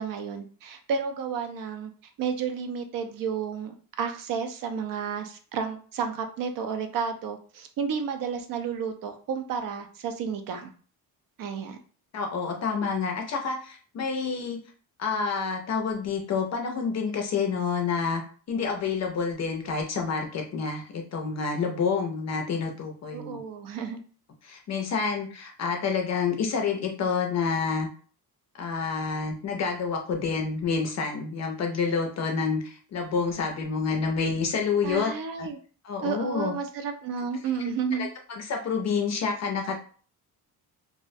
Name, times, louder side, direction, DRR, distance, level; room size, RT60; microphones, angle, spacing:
voice 1, 0.0-1.9 2.2-10.7 11.4-11.8 23.1-24.0 34.8-35.6 36.0-38.1, right 6 dB, 60° right, 7 dB, 0.5 m, -31 dB
voice 2, 12.1-14.6 15.0-18.2 18.5-23.4 24.4-27.9 28.6-35.1 35.4-35.5 35.8-36.5 38.0-39.8, left 5 dB, 45° left, 2 dB, 0.4 m, -28 dB
2.4 x 2.0 x 2.5 m, 0.41 s
cardioid pair, 145°, 39 cm